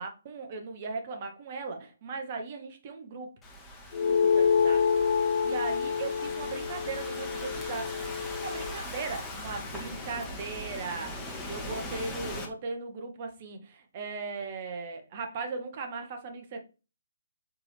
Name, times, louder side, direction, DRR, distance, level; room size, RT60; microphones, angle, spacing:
voice 1, 0.0-3.3 3.9-4.8 5.4-7.9 8.4-11.2 11.5-16.6, right 4 dB, 35° right, 0.9 m, -38 dB
Thunderstorm / Rain, 3.4-12.5, left 1 dB, 10° left, 0.8 m, -40 dB
sound 1, 3.9-8.7, left 6 dB, 40° left, 0.9 m, -27 dB
4.4 x 2.8 x 3.3 m
figure-of-eight pair, 135°, 0 cm